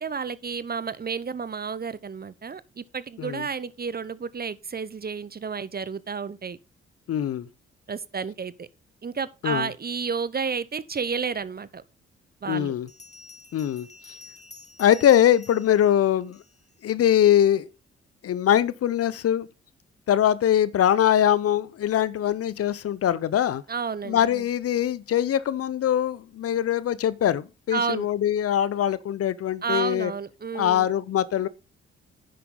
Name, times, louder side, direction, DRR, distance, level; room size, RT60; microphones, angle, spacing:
voice 1, 0.0-6.6 7.9-8.7 9.0-11.8 12.4-12.7 23.7-24.4 27.7-28.1 29.6-30.9, right 5 dB, 30° right, 0.9 m, -31 dB
voice 2, 7.1-7.5 9.4-9.7 12.5-12.9 13.5-13.9 14.8-16.4 16.8-17.7 18.2-19.5 20.1-23.6 24.1-30.1 30.5-31.5, left 10 dB, 50° left, 0.7 m, -22 dB
Bell, 11.7-11.8 12.9-16.8, left 2 dB, 20° left, 1.6 m, -49 dB
10.0 x 7.6 x 3.8 m
hypercardioid pair, 40°, 31 cm